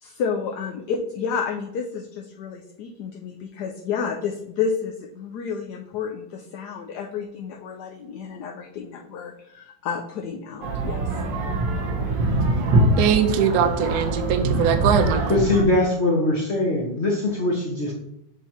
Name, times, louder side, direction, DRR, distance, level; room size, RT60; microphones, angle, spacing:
voice 1, 0.0-11.0, left 6 dB, 70° left, 2 dB, 1.1 m, -30 dB
sound 1, 10.6-15.6, right 2 dB, 80° right, 1.8 m, -23 dB
voice 2, 13.0-15.2, right 7 dB, 60° right, 8 dB, 1.0 m, -21 dB
voice 3, 15.3-17.9, left 2 dB, 40° left, -2 dB, 1.1 m, -22 dB
7.1 x 3.7 x 4.3 m, 0.78 s
omnidirectional pair, 2.1 m